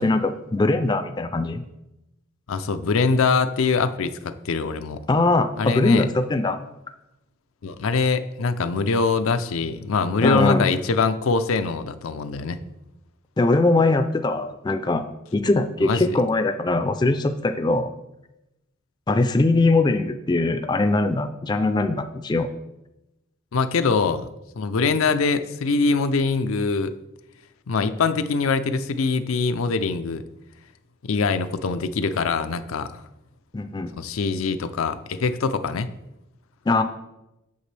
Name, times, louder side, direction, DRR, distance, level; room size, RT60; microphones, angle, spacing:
voice 1, 0.0-1.6 5.1-6.6 10.2-10.7 13.4-15.0 15.3-17.9 19.1-22.5 33.5-33.9 36.7-36.8, left 2 dB, 20° left, 8 dB, 0.4 m, -21 dB
voice 2, 2.5-5.0 5.6-6.0 7.6-12.6 15.8-16.1 23.5-24.3 24.6-26.9 27.7-30.2 31.0-33.0 34.0-35.9, left 4 dB, 85° left, 10 dB, 0.5 m, -23 dB
8.1 x 6.7 x 3.3 m, 0.92 s
head